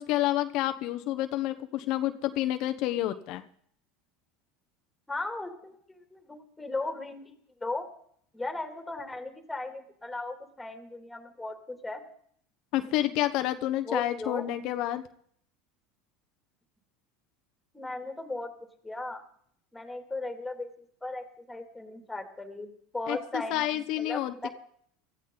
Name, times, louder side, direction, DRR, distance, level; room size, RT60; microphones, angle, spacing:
voice 1, 0.0-3.4 12.7-15.0 23.1-24.5, left 14 dB, 60° left, 9 dB, 1.0 m, -29 dB
voice 2, 5.1-7.4 7.6-7.9 8.3-12.0 13.8-14.5 17.7-18.5 18.8-19.2 19.7-20.7 21.0-24.5, left 2 dB, 10° left, 5 dB, 2.9 m, -37 dB
17.5 x 14.0 x 4.0 m, 0.63 s
supercardioid pair, 105°, 0 cm